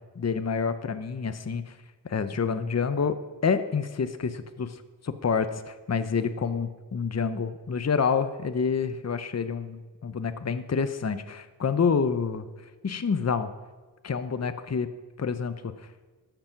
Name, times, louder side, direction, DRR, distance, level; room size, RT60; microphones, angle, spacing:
voice 1, 0.2-1.8 2.0-3.2 3.4-12.5 12.8-13.5 14.0-14.9 15.2-15.7, left 5 dB, 40° left, 11 dB, 0.7 m, -28 dB
13.5 x 6.9 x 5.9 m, 1.3 s
wide cardioid pair, 70°, 41 cm